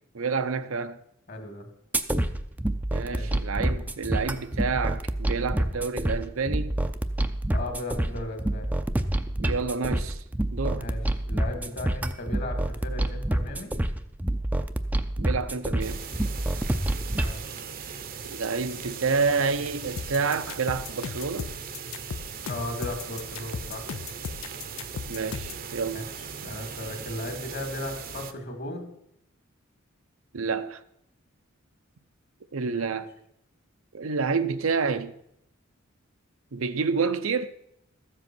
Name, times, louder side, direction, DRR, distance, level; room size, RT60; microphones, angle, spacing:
voice 1, 0.1-1.0 2.9-6.8 9.4-10.2 10.5-10.9 15.2-16.0 18.3-21.5 25.1-26.1 30.3-30.8 32.5-33.1 33.9-35.1 36.5-37.5, right 5 dB, 75° right, 0.7 m, -28 dB
voice 2, 1.3-1.7 3.0-3.3 7.5-8.7 10.7-13.7 17.0-17.4 22.4-23.9 25.9-26.0 26.4-28.9 32.5-33.1, left 1 dB, 55° left, 2.2 m, -36 dB
sound 1, 1.9-17.3, right 1 dB, 10° right, 0.5 m, -28 dB
sound 2, 15.8-28.3, right 6 dB, 45° right, 0.8 m, -39 dB
sound 3, 20.0-25.6, left 6 dB, 80° left, 0.5 m, -36 dB
13.5 x 7.7 x 6.0 m
head